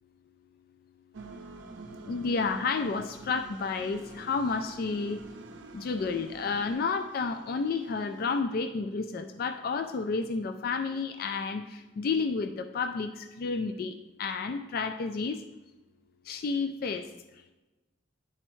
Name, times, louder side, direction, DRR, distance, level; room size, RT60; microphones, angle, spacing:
sound 1, 1.1-8.4, right 3 dB, 75° right, 0.6 m, -47 dB
voice 1, 2.1-5.2 5.7-15.4 16.3-17.1, left 4 dB, 50° left, 7 dB, 0.3 m, -31 dB
9.9 x 4.4 x 3.0 m, 1.1 s
head